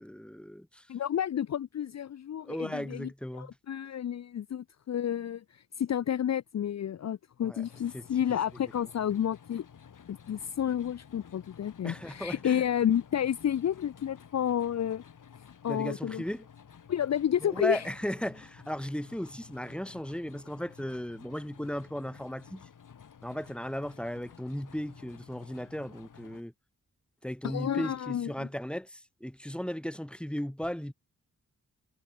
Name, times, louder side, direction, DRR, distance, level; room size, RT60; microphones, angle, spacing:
voice 1, 0.0-0.8 2.4-3.5 7.4-7.6 7.9-8.0 11.8-12.6 15.7-16.5 17.4-22.6 23.2-26.5 27.2-30.9, equal, 5° left, 5.1 m, -36 dB
voice 2, 0.9-9.7 10.1-15.0 15.6-16.2 16.9-17.9 27.4-28.5, left 10 dB, 55° left, 0.6 m, -31 dB
sound 1, 7.6-26.4, left 7 dB, 70° left, 4.0 m, -53 dB
wide cardioid pair, 135°, 32 cm